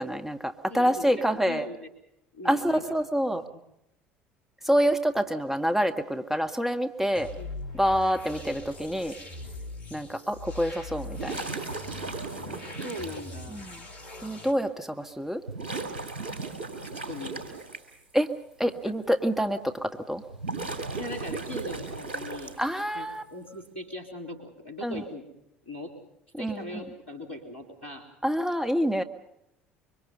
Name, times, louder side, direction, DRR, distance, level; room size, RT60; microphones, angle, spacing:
voice 1, 0.0-1.7 2.4-3.4 4.6-7.3 7.7-9.1 9.9-11.4 13.5-13.8 14.2-15.4 18.1-18.3 18.6-20.2 22.6-23.2 24.8-25.0 26.3-26.8 28.2-29.0, equal, 5° right, 6 dB, 1.7 m, -27 dB
voice 2, 0.7-1.9 2.3-2.8 3.3-3.4 7.0-7.5 12.5-13.6 17.1-17.7 21.0-22.5 22.9-25.3 25.7-25.9 26.4-28.1, left 1 dB, 85° left, 3 dB, 3.6 m, -40 dB
sound 1, 7.2-14.5, left 2 dB, 65° left, 3.3 m, -42 dB
sound 2, 11.1-13.2 14.3-14.4 15.5-17.8 20.2-22.8, right 3 dB, 75° right, 2.7 m, -36 dB
25.0 x 24.0 x 5.6 m, 0.84 s
figure-of-eight pair, 60°, 6 cm